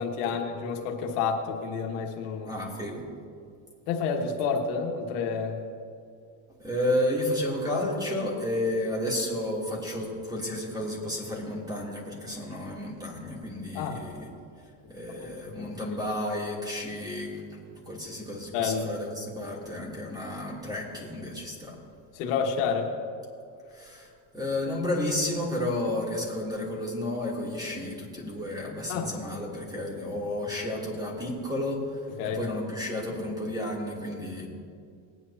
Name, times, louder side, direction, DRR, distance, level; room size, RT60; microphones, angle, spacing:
voice 1, 0.0-2.5 3.9-5.6 13.7-14.0 15.2-15.3 15.6-15.7 18.5-18.9 22.1-22.9 28.9-29.1 32.2-32.4, left 5 dB, 85° left, 1 dB, 1.6 m, -29 dB
voice 2, 2.5-3.0 6.6-14.3 14.9-17.3 17.9-21.8 23.7-34.5, left 1 dB, 10° right, -4 dB, 3.0 m, -32 dB
20.0 x 9.5 x 2.9 m, 2.3 s
supercardioid pair, 115°, 45 cm